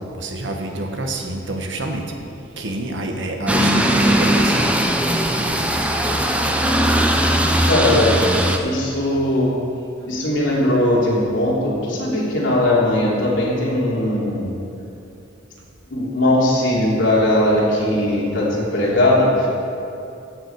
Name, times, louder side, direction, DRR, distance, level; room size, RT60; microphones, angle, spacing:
voice 1, 0.2-2.0 2.6-4.7 5.4-5.7, right 2 dB, 65° right, 3 dB, 1.2 m, -27 dB
sound 1, 3.5-8.6, right 1 dB, 5° right, 0.5 m, -18 dB
voice 2, 7.6-8.1 8.6-9.5 10.1-14.5 15.9-19.5, left 1 dB, 70° left, -6 dB, 3.1 m, -19 dB
15.0 x 7.6 x 4.8 m, 2.7 s
head